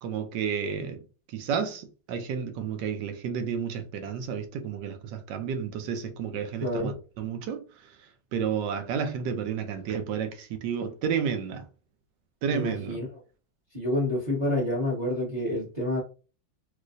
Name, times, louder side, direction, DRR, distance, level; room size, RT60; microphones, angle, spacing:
voice 1, 0.0-1.0 1.3-7.6 8.3-11.6 12.4-13.0, right 7 dB, 75° right, 1.2 m, -31 dB
voice 2, 6.6-7.0 12.5-13.1 13.7-16.0, left 1 dB, 25° right, 1.1 m, -28 dB
3.2 x 3.1 x 2.5 m
omnidirectional pair, 1.9 m